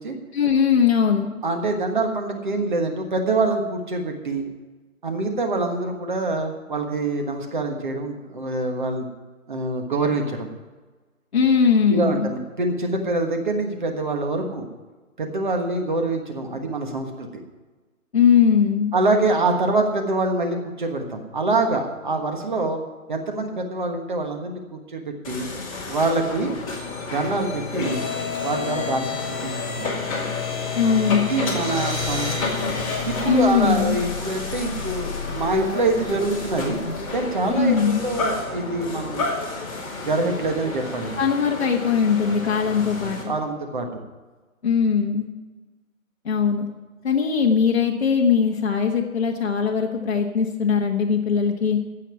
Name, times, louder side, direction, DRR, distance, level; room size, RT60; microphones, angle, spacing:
voice 1, 0.3-1.3 11.3-12.3 18.1-18.9 30.7-31.2 33.3-34.0 37.5-38.0 41.2-43.2 44.6-45.3 46.2-46.7 47.0-51.8, left 6 dB, 50° left, -1 dB, 1.4 m, -20 dB
voice 2, 1.4-4.4 5.0-9.1 9.5-10.5 11.9-14.7 15.2-17.3 18.9-22.8 23.1-25.5 25.9-26.5 27.1-28.0 28.4-29.9 31.3-32.7 33.1-36.8 37.1-39.3 40.0-41.2 43.2-44.0, right 2 dB, 35° right, 4 dB, 1.4 m, -25 dB
sound 1, 25.2-43.2, left 4 dB, 25° left, 2.6 m, -29 dB
15.5 x 5.8 x 9.4 m, 1.3 s
hypercardioid pair, 175°, 42 cm